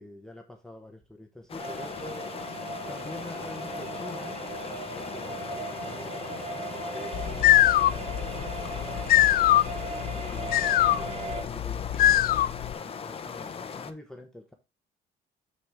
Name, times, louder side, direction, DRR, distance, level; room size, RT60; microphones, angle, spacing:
voice 1, 0.0-2.3 2.9-4.4 4.9-9.2 10.1-14.5, left 1 dB, 5° left, 1.1 m, -46 dB
sound 1, 1.5-13.9, left 6 dB, 35° left, 0.8 m, -39 dB
sound 2, 1.6-11.4, right 3 dB, 40° right, 1.5 m, -38 dB
sound 3, 7.1-12.7, left 13 dB, 60° left, 0.4 m, -23 dB
6.6 x 6.0 x 3.5 m
cardioid pair, 110°, 17 cm